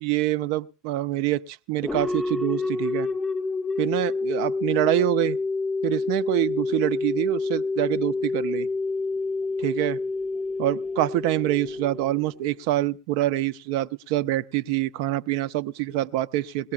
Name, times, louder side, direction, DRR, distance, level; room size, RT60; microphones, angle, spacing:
voice 1, 0.0-3.1 3.8-5.4 5.8-8.7 9.6-10.0 10.6-16.7, right 15 dB, 60° right, 14 dB, 0.6 m, -26 dB
sound 1, 1.8-12.5, left 3 dB, 5° left, 0.6 m, -28 dB
21.0 x 18.0 x 2.4 m, 0.31 s
hypercardioid pair, 95°, 2 cm